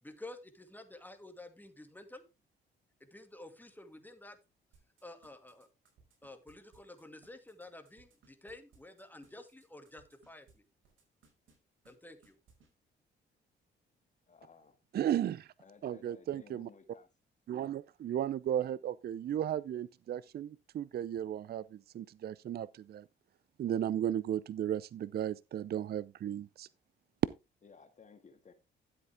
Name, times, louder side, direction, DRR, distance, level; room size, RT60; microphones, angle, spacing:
voice 1, 0.0-2.2 3.0-4.4 5.0-5.7 6.2-10.6 11.9-12.4, left 2 dB, 10° left, 2.3 m, -51 dB
sound 1, 4.7-10.5 10.8-11.6 11.8-11.9 12.2-12.7, right 5 dB, 75° right, 5.3 m, -65 dB
voice 2, 14.3-14.8 15.6-17.1 27.6-28.5, left 5 dB, 35° left, 2.0 m, -57 dB
voice 3, 14.9-15.5 15.8-16.7 17.5-23.1 23.6-26.7, right 10 dB, 50° right, 0.5 m, -35 dB
12.5 x 8.0 x 3.5 m
cardioid pair, 90°, 20 cm